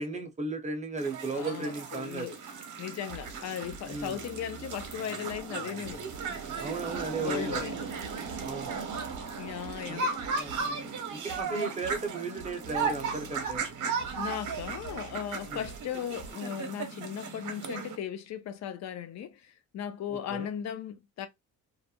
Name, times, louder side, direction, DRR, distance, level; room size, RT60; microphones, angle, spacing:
voice 1, 0.0-2.4 3.8-4.2 6.6-7.9 8.4-8.7 9.9-10.0 10.3-13.6 15.5-15.7 20.3-20.5, right 3 dB, 20° right, 0.6 m, -35 dB
sound 1, 1.0-18.0, right 5 dB, 55° right, 0.8 m, -36 dB
voice 2, 1.3-2.4 2.8-6.0 7.2-7.7 9.4-10.1 10.9-11.0 11.5-11.7 14.2-21.3, left 9 dB, 50° left, 0.5 m, -37 dB
sound 2, 2.9-16.3, right 4 dB, 90° right, 0.5 m, -49 dB
2.4 x 2.0 x 2.8 m
cardioid pair, 115°, 36 cm